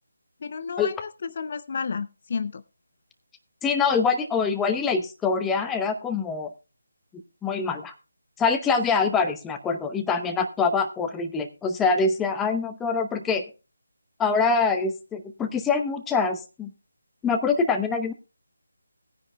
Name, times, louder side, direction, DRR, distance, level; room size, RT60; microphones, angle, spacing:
voice 1, 0.4-2.6, left 5 dB, 45° left, 15 dB, 0.4 m, -32 dB
voice 2, 3.6-6.5 7.4-7.9 8.4-13.5 14.2-16.7 17.2-18.1, left 5 dB, 10° left, 7 dB, 0.8 m, -24 dB
19.0 x 9.9 x 2.2 m, 0.31 s
figure-of-eight pair, 160°, 0 cm